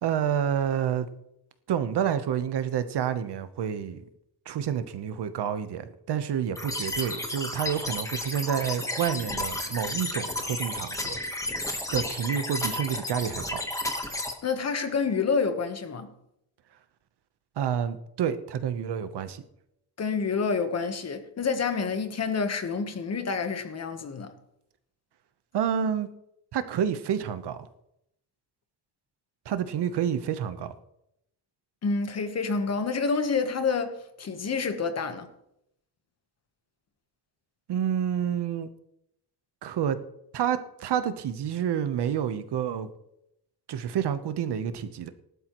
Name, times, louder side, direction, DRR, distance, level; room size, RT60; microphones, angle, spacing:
voice 1, 0.0-1.1 1.7-4.0 4.5-11.5 11.9-13.6 17.6-19.4 25.5-26.1 26.5-27.6 29.5-30.7 37.7-38.7 39.6-40.0 40.3-42.9 43.7-45.1, right 8 dB, 70° right, 1.0 m, -29 dB
sound 1, 6.6-14.3, left 2 dB, 5° left, 1.2 m, -32 dB
voice 2, 14.4-16.1 20.0-24.3 31.8-35.3, left 5 dB, 35° left, 1.1 m, -28 dB
18.5 x 12.0 x 3.0 m
wide cardioid pair, 175°, 42 cm